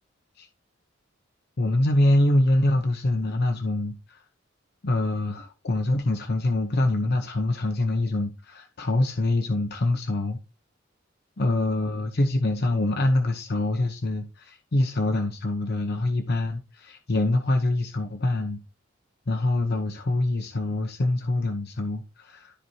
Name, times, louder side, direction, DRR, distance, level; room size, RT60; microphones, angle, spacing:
voice 1, 1.6-4.2 4.8-10.4 11.4-18.6 19.3-22.6, left 1 dB, 55° left, 0.8 m, -25 dB
13.0 x 4.6 x 2.8 m
head